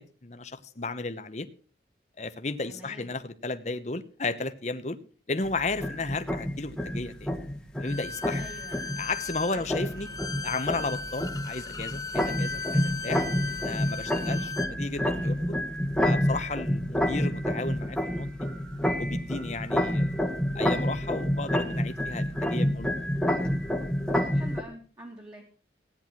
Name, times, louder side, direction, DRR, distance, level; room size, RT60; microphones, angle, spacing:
voice 1, 0.0-1.5 2.2-5.0 5.3-7.4 7.8-8.4 9.0-10.1 10.4-13.2 13.6-15.6 16.0-18.5 19.0-20.2 20.5-23.0, left 3 dB, 40° left, 11 dB, 1.0 m, -34 dB
voice 2, 2.7-3.1 8.4-8.9 9.5-9.8 14.3-14.6 24.2-25.4, right 1 dB, 25° right, -1 dB, 2.5 m, -46 dB
sound 1, 5.4-24.6, equal, 5° left, 1.5 m, -29 dB
Bowed string instrument, 7.8-14.7, left 4 dB, 20° left, 0.6 m, -37 dB
16.0 x 10.0 x 6.0 m, 0.40 s
head